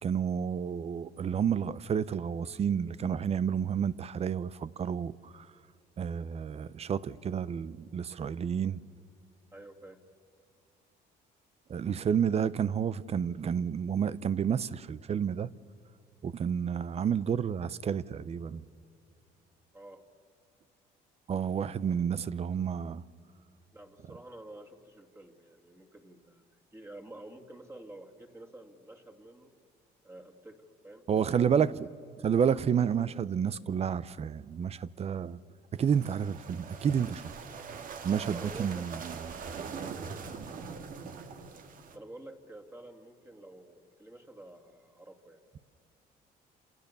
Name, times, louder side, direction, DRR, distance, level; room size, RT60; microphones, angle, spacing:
voice 1, 0.0-5.5 6.0-8.8 11.7-15.5 16.2-18.6 21.3-23.0 31.1-31.9 32.2-35.4 35.7-37.3 38.0-39.4, right 7 dB, 40° right, 0.7 m, -30 dB
voice 2, 9.5-10.0 19.7-20.1 23.7-26.4 26.7-29.5 30.0-31.1 38.3-38.9 41.9-45.4, right 1 dB, 15° right, 2.7 m, -49 dB
sound 1, 35.8-42.0, right 5 dB, 55° right, 1.9 m, -42 dB
29.0 x 27.5 x 6.9 m
cardioid pair, 110°, 17 cm